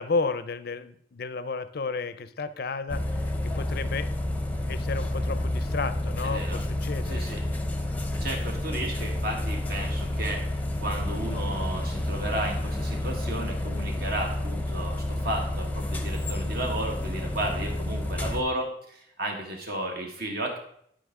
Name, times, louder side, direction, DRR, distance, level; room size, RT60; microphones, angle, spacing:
voice 1, 0.0-4.1 4.7-7.5, left 4 dB, 55° left, 13 dB, 0.5 m, -32 dB
sound 1, 2.9-18.4, left 1 dB, 10° left, 0.7 m, -30 dB
voice 2, 6.2-6.6 7.0-7.4 8.2-20.6, right 1 dB, 55° right, 1 dB, 1.8 m, -33 dB
11.5 x 5.0 x 3.7 m, 0.68 s
head